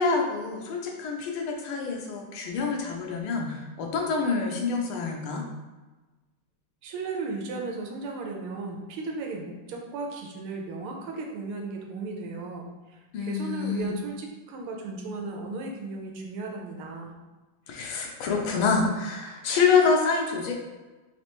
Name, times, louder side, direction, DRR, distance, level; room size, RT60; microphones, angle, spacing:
voice 1, 0.0-5.4 13.1-13.9 17.7-20.5, left 5 dB, 80° left, 1 dB, 1.5 m, -26 dB
voice 2, 6.8-17.1, right 3 dB, 85° right, 1 dB, 1.6 m, -35 dB
4.3 x 3.3 x 3.0 m, 1.2 s
omnidirectional pair, 2.4 m